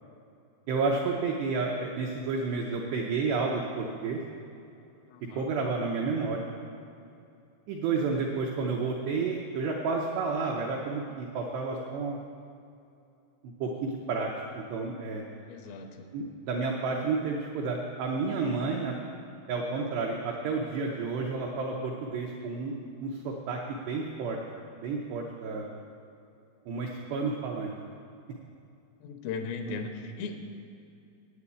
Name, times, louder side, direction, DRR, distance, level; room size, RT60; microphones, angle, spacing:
voice 1, 0.7-4.2 5.4-6.5 7.7-12.2 13.6-15.2 16.1-18.9 19.5-24.4 24.8-25.7 26.7-27.7, right 4 dB, 85° right, -1 dB, 2.4 m, -31 dB
voice 2, 5.1-5.5 15.5-16.1 29.0-30.4, left 4 dB, 90° left, 5 dB, 3.5 m, -37 dB
9.1 x 8.3 x 8.4 m, 2.6 s
omnidirectional pair, 5.9 m